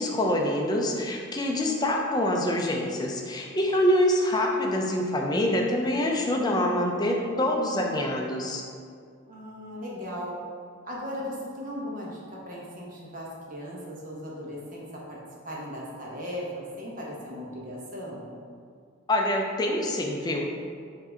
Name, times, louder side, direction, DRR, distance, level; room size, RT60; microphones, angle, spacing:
voice 1, 0.0-8.6 19.1-20.5, left 1 dB, 20° left, 1 dB, 0.4 m, -25 dB
voice 2, 9.3-10.4 10.8-15.2 15.4-18.4, equal, 40° right, -4 dB, 0.9 m, -37 dB
4.6 x 2.7 x 4.3 m, 2.3 s
head